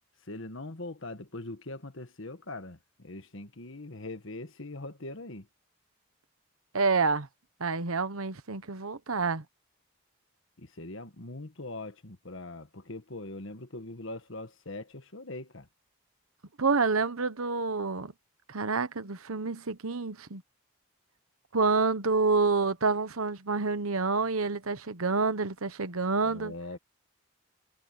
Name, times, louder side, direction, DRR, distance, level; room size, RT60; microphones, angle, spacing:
voice 1, 0.3-5.5 10.6-15.7 26.2-26.8, left 2 dB, 65° left, 1.6 m, -41 dB
voice 2, 6.7-7.3 7.6-9.4 16.6-18.1 18.5-20.4 21.5-26.5, right 4 dB, 85° right, 1.2 m, -28 dB
head